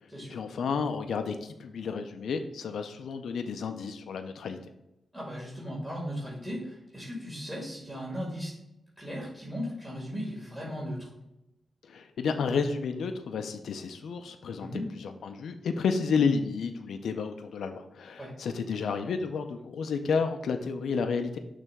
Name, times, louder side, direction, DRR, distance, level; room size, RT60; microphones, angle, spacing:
voice 1, 0.3-4.6 11.8-14.7 14.9-21.4, left 5 dB, 90° left, 7 dB, 0.5 m, -31 dB
voice 2, 5.1-8.5 9.0-11.1 14.6-14.9 18.2-18.3, equal, 10° right, -4 dB, 2.1 m, -37 dB
6.4 x 3.3 x 5.1 m, 0.87 s
cardioid pair, 80°, 0 cm